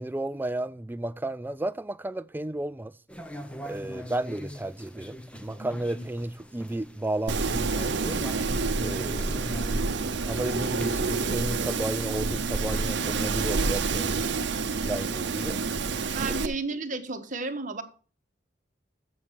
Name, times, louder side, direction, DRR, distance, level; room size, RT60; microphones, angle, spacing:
voice 1, 0.0-2.9 3.7-8.2 8.8-10.0 10.2-14.3 14.8-15.6 15.9-16.4, right 1 dB, 10° right, 0.3 m, -33 dB
sound 1, 3.1-13.6, equal, 5° left, 0.7 m, -42 dB
Wind, 7.3-16.5, right 4 dB, 70° right, 0.7 m, -28 dB
voice 2, 16.1-17.8, right 3 dB, 45° right, 1.1 m, -32 dB
7.3 x 7.2 x 6.3 m
head